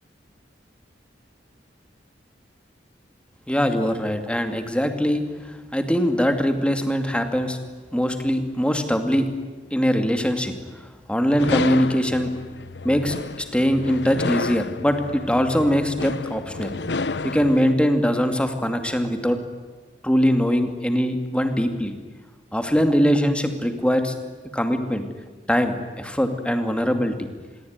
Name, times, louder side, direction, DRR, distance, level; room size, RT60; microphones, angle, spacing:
voice 1, 3.5-7.6 7.9-9.3 9.7-10.5 11.1-12.3 12.8-16.7 17.2-19.4 20.0-21.9 22.5-24.1 24.5-25.0 25.5-27.2, equal, 5° left, 6 dB, 2.5 m, -22 dB
sound 1, 11.4-17.7, left 3 dB, 70° left, 0.9 m, -31 dB
26.0 x 22.5 x 9.6 m, 1.4 s
head